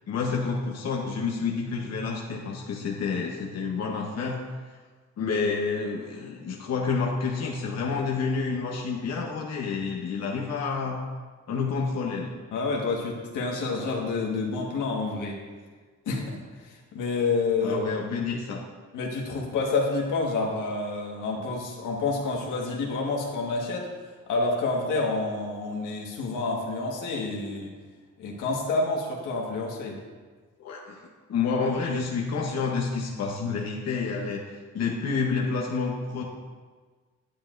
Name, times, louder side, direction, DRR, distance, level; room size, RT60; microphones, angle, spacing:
voice 1, 0.1-4.4 5.2-11.0 11.5-12.3 17.6-18.6 30.6-36.2, left 5 dB, 60° left, -1 dB, 1.0 m, -29 dB
voice 2, 12.5-15.4 16.0-17.8 18.9-23.9 24.3-27.7 28.2-30.0, left 3 dB, 85° left, -1 dB, 1.6 m, -28 dB
9.8 x 8.8 x 2.6 m, 1.4 s
cardioid pair, 90°, 30 cm